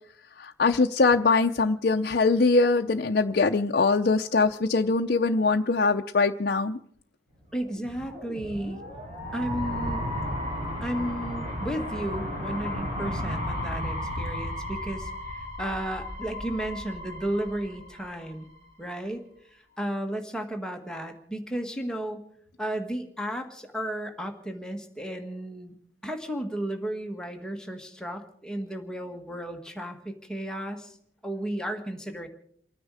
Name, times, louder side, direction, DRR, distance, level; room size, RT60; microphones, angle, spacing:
voice 1, 0.4-6.8, left 3 dB, 60° left, 2 dB, 0.6 m, -22 dB
voice 2, 7.5-8.8 9.3-10.0 10.8-15.1 15.6-18.5 18.8-22.2 22.6-25.8 26.0-31.0 31.2-32.3, right 1 dB, 5° left, 3 dB, 1.6 m, -33 dB
sound 1, 7.6-18.6, left 1 dB, 45° right, 7.3 m, -34 dB
29.0 x 9.9 x 4.9 m, 0.66 s
head